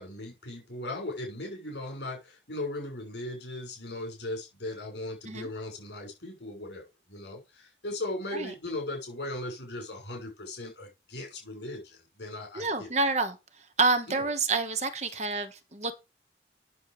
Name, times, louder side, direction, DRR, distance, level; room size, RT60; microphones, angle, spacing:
voice 1, 0.0-12.9 14.1-14.3 15.1-15.4, left 1 dB, 70° left, 6.0 m, -38 dB
voice 2, 12.5-13.4 13.8-15.9, right 3 dB, 40° right, 1.2 m, -28 dB
9.5 x 6.7 x 4.9 m
head